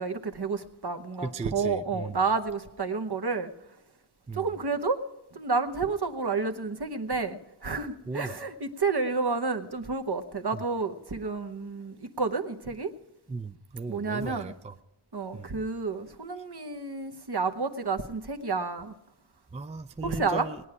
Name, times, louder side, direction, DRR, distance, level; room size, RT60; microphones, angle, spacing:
voice 1, 0.0-3.5 4.3-5.0 5.3-12.9 13.9-14.5 15.1-18.9 20.0-20.5, right 4 dB, 55° right, 1.0 m, -30 dB
voice 2, 1.2-2.2 4.3-4.5 8.1-8.3 10.5-10.6 13.3-14.7 15.3-15.5 19.5-20.6, right 4 dB, 15° right, 0.4 m, -37 dB
19.0 x 9.7 x 4.8 m
wide cardioid pair, 50°, 48 cm